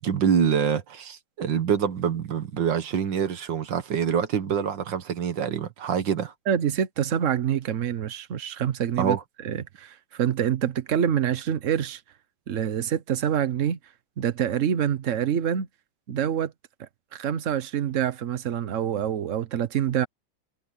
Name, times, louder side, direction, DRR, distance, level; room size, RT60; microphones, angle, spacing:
voice 1, 0.0-6.3 9.0-9.2, right 7 dB, 70° right, 2.1 m, -25 dB
voice 2, 6.5-9.2 9.4-12.0 12.5-13.8 14.2-15.7 16.1-16.5 16.8-20.1, right 9 dB, 50° right, 1.1 m, -26 dB
omnidirectional pair, 2.1 m